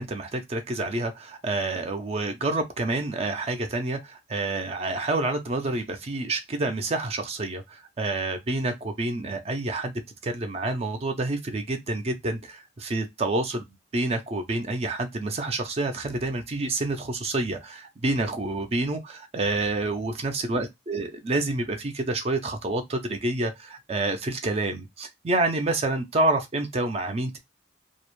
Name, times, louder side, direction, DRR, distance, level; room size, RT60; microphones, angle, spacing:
voice 1, 0.0-9.9 10.2-13.6 13.9-27.4, right 2 dB, 35° right, 0.4 m, -28 dB
2.4 x 2.0 x 2.9 m
head